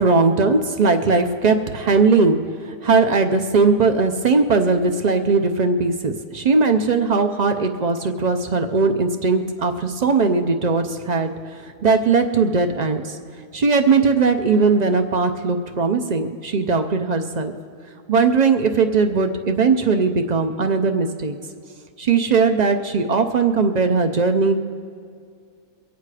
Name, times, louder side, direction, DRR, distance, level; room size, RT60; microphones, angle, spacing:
voice 1, 0.0-2.4 2.7-11.3 11.8-13.2 13.5-17.5 18.1-21.4 22.0-24.6, right 4 dB, 60° right, 7 dB, 0.4 m, -19 dB
23.5 x 8.2 x 4.9 m, 2.3 s
omnidirectional pair, 1.6 m